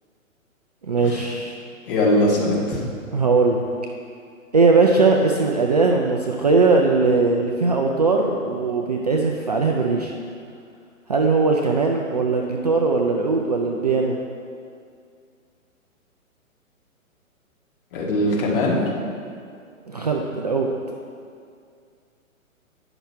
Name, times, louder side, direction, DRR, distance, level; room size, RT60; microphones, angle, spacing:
voice 1, 0.8-1.5 3.1-3.6 4.5-10.1 11.1-14.2 19.9-20.7, right 3 dB, 30° right, 0 dB, 0.4 m, -19 dB
voice 2, 1.9-2.8 17.9-18.8, left 1 dB, 40° left, -4 dB, 1.9 m, -21 dB
10.0 x 5.9 x 4.4 m, 2.3 s
figure-of-eight pair, 130°, 42 cm